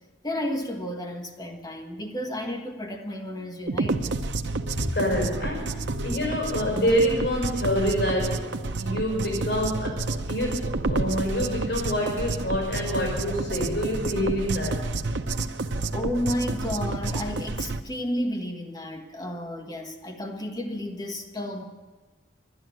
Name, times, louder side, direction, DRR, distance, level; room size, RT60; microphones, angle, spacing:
voice 1, 0.2-4.3 15.9-21.6, left 1 dB, 20° left, 2 dB, 1.6 m, -32 dB
sound 1, 3.7-17.8, right 3 dB, 80° right, 0.7 m, -30 dB
voice 2, 4.7-14.9, equal, 70° left, -1 dB, 5.7 m, -27 dB
12.0 x 11.0 x 9.4 m, 1.3 s
head